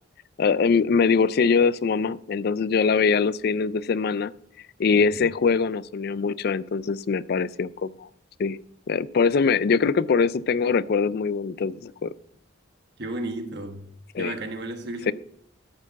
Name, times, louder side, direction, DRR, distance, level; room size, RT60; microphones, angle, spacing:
voice 1, 0.4-4.3 4.8-8.1 8.4-8.6 8.9-12.1 14.1-14.3 15.1-15.2, left 5 dB, 55° left, 0.4 m, -23 dB
voice 2, 13.0-13.9 14.2-15.1, right 2 dB, 60° right, 1.4 m, -33 dB
12.5 x 4.6 x 7.1 m
head